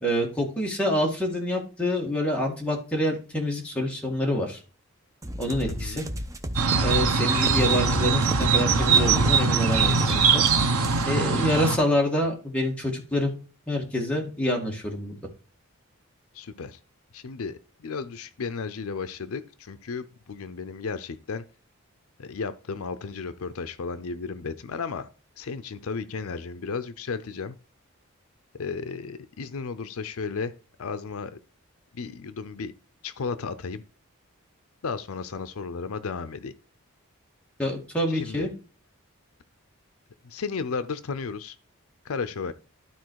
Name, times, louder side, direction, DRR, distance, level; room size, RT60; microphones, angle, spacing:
voice 1, 0.0-4.6 5.4-6.0 6.8-10.4 11.1-13.3 13.7-15.2 37.6-38.5, left 1 dB, 5° left, -1 dB, 1.9 m, -27 dB
sound 1, 5.2-11.1, equal, 15° right, 0.6 m, -31 dB
voice 2, 5.6-6.1 10.9-11.5 16.3-16.8 17.1-21.4 22.2-25.1 25.4-27.6 28.5-30.5 30.8-31.3 31.9-32.7 33.0-33.8 34.8-36.5 38.1-38.5 40.2-41.6 42.0-42.5, left 5 dB, 70° left, 12 dB, 0.6 m, -34 dB
sound 2, 6.6-11.8, right 5 dB, 80° right, 0.9 m, -22 dB
12.0 x 4.2 x 4.6 m, 0.37 s
head